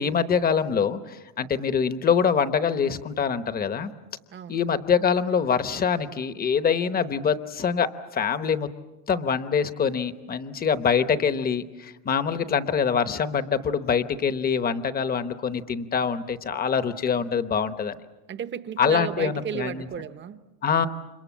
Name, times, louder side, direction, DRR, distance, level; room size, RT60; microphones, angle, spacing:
voice 1, 0.0-3.9 4.5-8.7 9.1-18.0 18.8-19.9 20.6-20.9, left 6 dB, 20° left, 11 dB, 0.9 m, -24 dB
voice 2, 4.3-4.6 18.3-20.4, right 8 dB, 30° right, 12 dB, 0.9 m, -33 dB
30.0 x 27.0 x 7.3 m, 1.1 s
cardioid pair, 175°, 41 cm